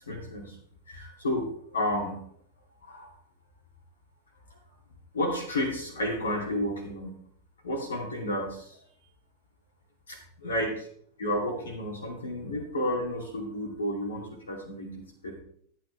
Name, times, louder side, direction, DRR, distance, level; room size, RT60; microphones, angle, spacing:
voice 1, 0.1-0.6 0.9-2.2 2.8-3.1 5.1-7.2 7.6-8.8 10.1-10.9 11.2-15.4, left 1 dB, 70° left, 1 dB, 2.5 m, -32 dB
13.0 x 9.4 x 3.3 m, 0.62 s
figure-of-eight pair, 90°, 0 cm